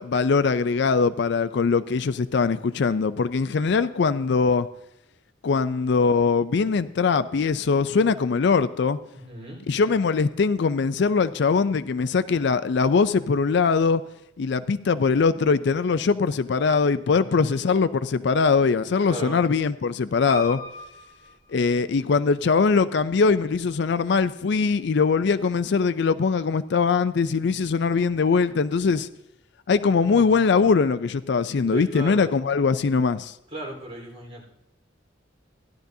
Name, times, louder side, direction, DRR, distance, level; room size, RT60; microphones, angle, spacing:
voice 1, 0.0-4.7 5.4-9.0 9.7-14.0 14.4-20.6 21.5-29.1 29.7-33.3, left 5 dB, 60° left, 14 dB, 0.4 m, -22 dB
voice 2, 9.1-9.6 17.1-17.7 19.1-19.4 31.7-32.3 33.5-34.5, right 1 dB, 30° right, -2 dB, 4.0 m, -36 dB
Piano, 20.3-22.3 22.9-23.6 23.9-24.0 24.2-24.3, left 1 dB, 20° left, 3.5 m, -39 dB
16.0 x 11.5 x 2.7 m, 0.83 s
head